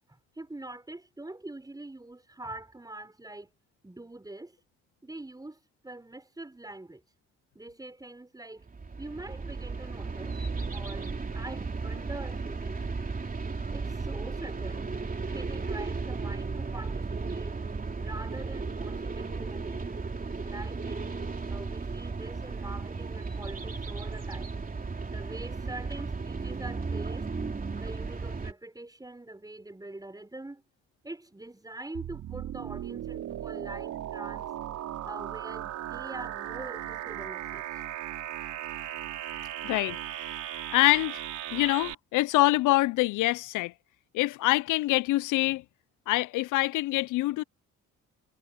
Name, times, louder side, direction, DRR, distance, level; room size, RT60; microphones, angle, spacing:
voice 1, 0.1-3.5 3.8-4.6 5.0-5.6 5.8-7.0 7.5-8.7 9.0-10.4 10.7-13.1 13.7-14.9 15.2-17.6 18.0-19.9 20.4-21.1 21.5-24.6 25.1-27.3 27.8-30.6 31.0-34.5 35.0-37.7, right 2 dB, 10° right, 6.2 m, -44 dB
sound 1, 8.6-28.5, right 4 dB, 30° right, 3.4 m, -35 dB
sound 2, 31.9-41.9, right 12 dB, 80° right, 4.5 m, -37 dB
voice 2, 39.6-41.3 41.5-43.7 44.1-45.6 46.1-47.4, left 18 dB, 85° left, 0.5 m, -25 dB
cardioid pair, 90°, 30 cm